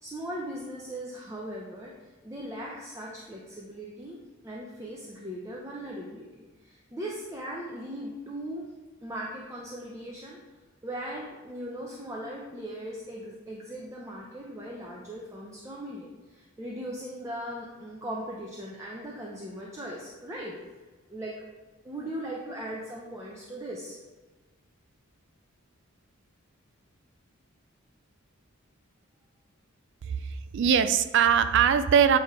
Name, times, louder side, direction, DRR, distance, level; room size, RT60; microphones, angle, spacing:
voice 1, 0.0-8.7 9.0-10.4 10.8-20.6 21.1-21.4 21.8-24.0, right 1 dB, 15° right, -4 dB, 0.6 m, -39 dB
voice 2, 30.0-32.2, right 7 dB, 55° right, 12 dB, 0.3 m, -22 dB
8.4 x 2.9 x 4.7 m, 1.2 s
head